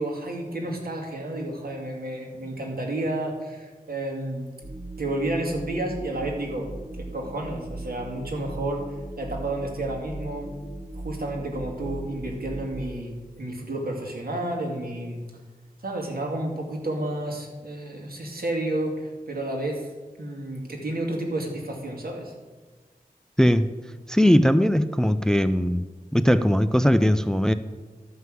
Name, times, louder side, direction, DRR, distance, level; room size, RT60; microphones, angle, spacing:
voice 1, 0.0-4.5 5.0-6.7 7.0-8.9 9.2-10.6 10.9-15.2 15.8-19.9 20.2-22.3, right 1 dB, 75° right, 0 dB, 2.4 m, -31 dB
sound 1, 4.6-12.7, right 1 dB, 50° right, 2.6 m, -38 dB
voice 2, 23.4-23.8 24.1-25.8 26.1-27.5, equal, 5° left, 12 dB, 0.4 m, -20 dB
12.5 x 5.7 x 7.7 m, 1.3 s
wide cardioid pair, 75°, 16 cm